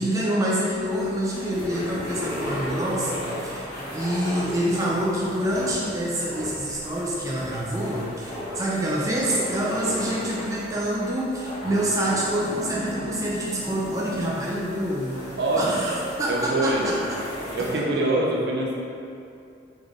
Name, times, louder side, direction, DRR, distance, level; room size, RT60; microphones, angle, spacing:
voice 1, 0.0-15.2 15.6-17.0 17.6-17.8, right 1 dB, 20° right, -5 dB, 0.4 m, -26 dB
sound 1, 0.7-17.7, equal, 25° left, 1.0 m, -36 dB
voice 2, 15.4-16.0 16.3-16.9 17.5-18.8, right 2 dB, 60° right, -2 dB, 0.6 m, -24 dB
3.7 x 3.6 x 3.5 m, 2.6 s
head